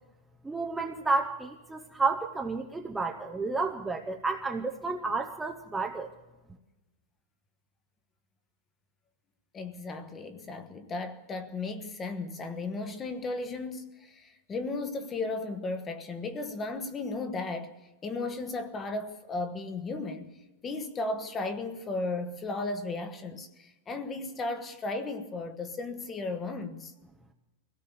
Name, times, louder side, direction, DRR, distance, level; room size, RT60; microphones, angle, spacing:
voice 1, 0.4-6.1, right 3 dB, 5° right, 0.8 m, -31 dB
voice 2, 9.5-17.7 18.0-20.3 20.6-26.9, left 3 dB, 15° left, 1.2 m, -35 dB
24.0 x 17.0 x 6.9 m
supercardioid pair, 175°, 0 cm